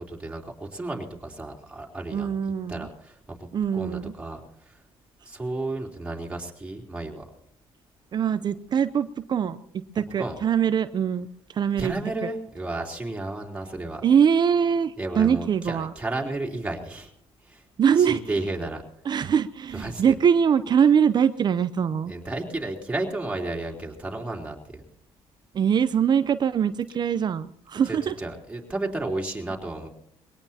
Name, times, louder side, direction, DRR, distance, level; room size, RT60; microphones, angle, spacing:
voice 1, 0.1-2.3 2.7-4.8 5.2-7.3 10.2-10.4 11.8-14.0 15.0-17.1 17.4-17.6 18.0-18.8 19.7-20.2 22.1-24.8 27.9-29.9, right 2 dB, 10° right, 0 dB, 3.6 m, -33 dB
voice 2, 2.1-2.9 3.5-4.1 8.1-11.9 12.2-12.3 14.0-15.9 17.8-18.2 19.0-22.1 25.5-28.1, right 7 dB, 40° right, 12 dB, 0.7 m, -23 dB
22.5 x 18.0 x 2.9 m, 0.72 s
cardioid pair, 100°, 11 cm